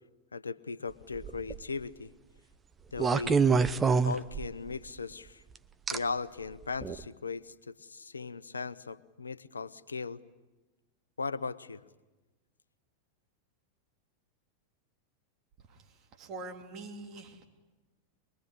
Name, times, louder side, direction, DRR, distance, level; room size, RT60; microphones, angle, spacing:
voice 1, 0.3-2.1 2.9-3.4 4.0-5.4 5.9-10.2 11.2-11.8, left 4 dB, 75° left, 17 dB, 0.8 m, -38 dB
sound 1, 1.2-1.6 3.0-4.7 5.9-6.0 6.8-7.0, right 5 dB, 15° right, 0.9 m, -26 dB
voice 2, 16.2-17.4, right 3 dB, 35° right, 4 dB, 3.3 m, -44 dB
23.0 x 23.0 x 9.9 m, 1.1 s
figure-of-eight pair, 90°, 0 cm